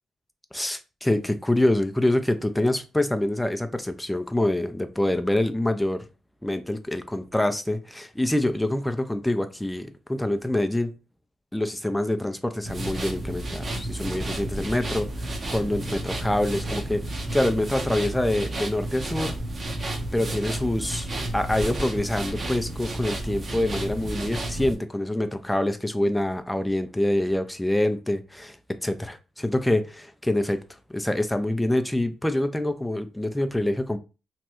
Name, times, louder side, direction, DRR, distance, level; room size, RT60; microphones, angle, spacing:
voice 1, 0.5-6.0 6.4-10.9 11.5-17.0 17.3-19.4 20.1-21.1 21.3-28.6 28.8-30.6 30.9-34.0, left 1 dB, 10° left, 0.4 m, -26 dB
sound 1, 12.6-24.7, right 1 dB, 45° right, 0.8 m, -32 dB
3.0 x 2.2 x 2.9 m
cardioid pair, 70°, 0 cm